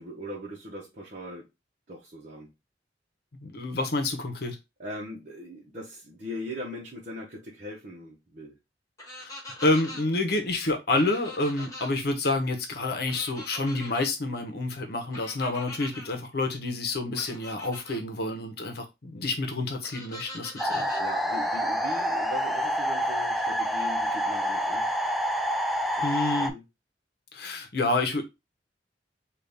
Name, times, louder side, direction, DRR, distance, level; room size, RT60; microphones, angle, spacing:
voice 1, 0.0-1.5 1.9-2.5 4.8-8.6 11.6-11.7 21.0-24.9 26.4-26.6, equal, 45° right, 0.9 m, -40 dB
voice 2, 3.4-4.6 9.2-9.3 9.6-20.9 26.0-26.5 27.3-28.2, left 2 dB, 65° left, 0.8 m, -28 dB
sound 1, 9.0-10.0 11.0-11.9 13.1-14.1 15.1-16.1 17.1-18.0 19.8-21.0, left 1 dB, 20° left, 1.4 m, -42 dB
sound 2, 20.6-26.5, equal, ahead, 0.3 m, -27 dB
3.9 x 2.5 x 3.4 m
head